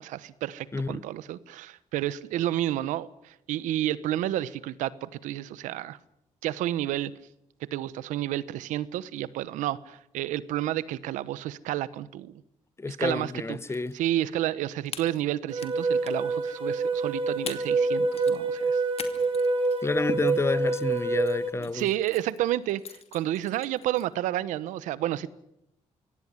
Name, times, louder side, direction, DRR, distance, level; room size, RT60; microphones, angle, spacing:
voice 1, 0.0-6.0 6.4-7.1 7.7-12.4 12.9-13.6 13.9-18.8 21.6-25.3, right 13 dB, 90° right, 1.0 m, -30 dB
voice 2, 0.7-1.0 12.8-14.0 19.8-21.9, left 3 dB, 20° left, 0.9 m, -29 dB
sound 1, 13.5-13.9 14.2-14.3 14.9-15.7 16.0-16.3 17.1-17.2 17.5-17.8 18.1-24.1, left 6 dB, 55° left, 2.5 m, -43 dB
sound 2, 15.5-21.5, right 3 dB, 45° right, 7.0 m, -26 dB
23.5 x 17.0 x 9.9 m
cardioid pair, 70°, 13 cm